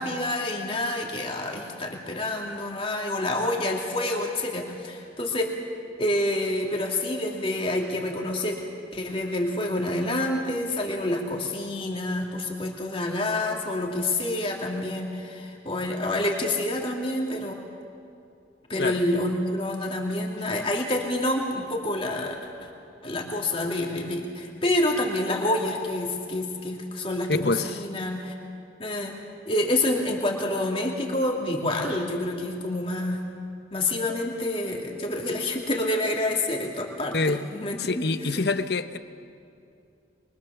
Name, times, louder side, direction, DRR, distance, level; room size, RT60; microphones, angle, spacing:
voice 1, 0.0-5.5 6.0-8.6 8.9-17.6 18.7-22.4 22.6-22.7 23.0-28.3 28.8-29.1 29.5-33.2 33.7-38.1 38.3-38.5, left 1 dB, 30° left, 0 dB, 2.9 m, -28 dB
voice 2, 27.3-27.8 37.1-37.4 37.8-39.0, left 3 dB, 60° left, 11 dB, 0.9 m, -26 dB
24.5 x 23.0 x 7.1 m, 2.6 s
head